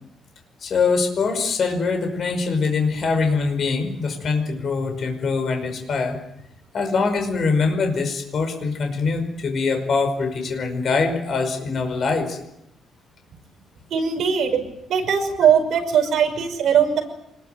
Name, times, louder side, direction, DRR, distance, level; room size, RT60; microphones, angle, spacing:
voice 1, 0.6-6.2 6.7-12.4, left 4 dB, 40° left, 5 dB, 5.4 m, -23 dB
voice 2, 13.9-14.6 14.9-17.0, right 7 dB, 60° right, 4 dB, 5.8 m, -19 dB
26.0 x 21.0 x 9.3 m, 0.81 s
cardioid pair, 175°, 0 cm